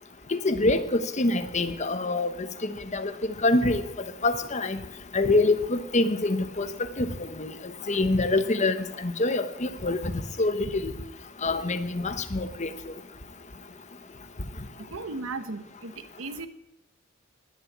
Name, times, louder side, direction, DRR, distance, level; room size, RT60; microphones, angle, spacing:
voice 1, 0.3-2.3 2.6-3.1 3.4-3.8 4.2-4.8 5.1-6.7 7.0-7.5 7.9-10.0 10.4-10.9 11.4-12.7, left 2 dB, 35° left, 10 dB, 1.1 m, -25 dB
voice 2, 14.8-16.5, right 3 dB, 80° right, 10 dB, 1.1 m, -36 dB
19.0 x 7.2 x 8.6 m, 0.91 s
head